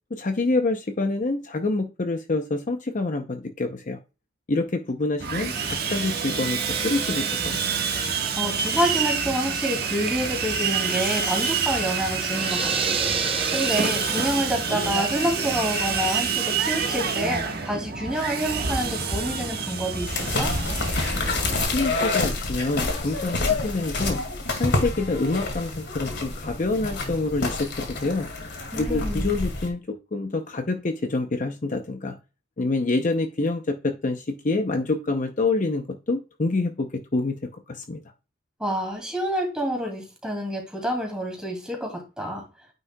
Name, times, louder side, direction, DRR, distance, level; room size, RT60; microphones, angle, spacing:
voice 1, 0.1-4.0 4.5-7.6 21.1-24.2 24.6-28.3 28.7-32.2 32.6-38.0, left 3 dB, 40° left, 6 dB, 0.6 m, -27 dB
Sawing, 5.2-21.7, right 5 dB, 50° right, 1.3 m, -27 dB
voice 2, 8.4-13.0 13.5-20.5 28.7-29.3 38.6-42.4, equal, 5° right, 1 dB, 2.4 m, -28 dB
sound 1, 12.3-14.8, right 5 dB, 25° right, 0.6 m, -29 dB
sound 2, 20.1-29.7, left 3 dB, 55° left, 2.0 m, -28 dB
9.5 x 5.4 x 2.2 m, 0.30 s
head